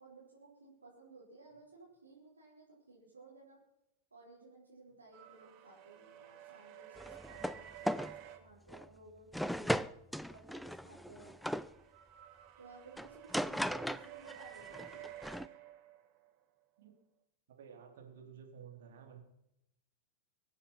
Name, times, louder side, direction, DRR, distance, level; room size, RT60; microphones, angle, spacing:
voice 1, 0.0-3.6 4.1-9.9 10.3-11.4 12.6-15.1, right 3 dB, 75° right, -6 dB, 4.7 m, -57 dB
sound 1, 5.1-8.4 10.8-16.3, right 12 dB, 40° right, 1.9 m, -53 dB
sound 2, 7.0-7.6 7.9-8.2 8.7-8.9 9.3-11.7 13.0-14.4 14.7-15.5, equal, ahead, 0.5 m, -37 dB
voice 2, 17.6-19.2, right 7 dB, 60° right, 2 dB, 3.6 m, -53 dB
24.0 x 8.3 x 5.9 m, 0.83 s
figure-of-eight pair, 90°, 0 cm